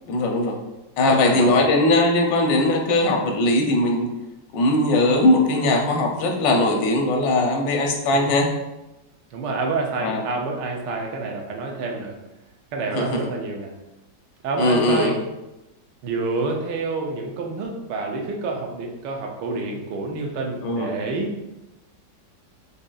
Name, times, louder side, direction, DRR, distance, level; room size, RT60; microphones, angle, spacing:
voice 1, 0.1-0.6 1.0-4.1 4.5-8.5 10.0-10.2 12.9-13.2 14.6-15.2 20.6-20.9, left 2 dB, 80° left, 2 dB, 1.3 m, -20 dB
voice 2, 1.0-1.6 8.3-8.4 9.3-12.2 12.7-13.7 14.4-15.2 16.0-21.3, right 3 dB, 80° right, 1 dB, 1.2 m, -28 dB
4.9 x 2.6 x 2.3 m, 0.98 s
omnidirectional pair, 2.0 m